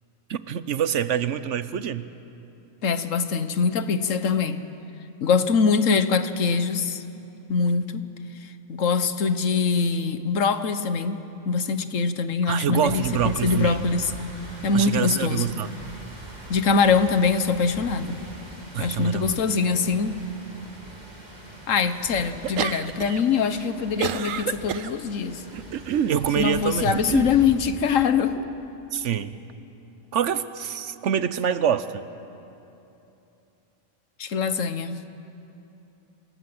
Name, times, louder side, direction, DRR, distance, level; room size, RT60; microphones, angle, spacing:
voice 1, 0.3-2.1 12.5-13.8 14.7-15.7 18.7-19.4 26.1-27.0 28.9-29.4 30.1-32.1, right 9 dB, 70° right, 13 dB, 1.1 m, -26 dB
voice 2, 2.8-4.6 5.2-7.0 7.5-8.1 8.4-11.2 11.4-14.1 14.6-15.4 16.5-18.2 18.8-20.2 21.7-25.4 26.4-28.5 34.2-35.0, left 5 dB, 80° left, 11 dB, 1.4 m, -23 dB
sound 1, 12.7-27.5, right 1 dB, 35° right, 2.9 m, -42 dB
sound 2, 22.4-23.2 23.5-24.9 25.5-26.2 26.9-27.3, right 9 dB, 85° right, 1.2 m, -28 dB
27.5 x 19.0 x 7.9 m, 2.9 s
omnidirectional pair, 1.3 m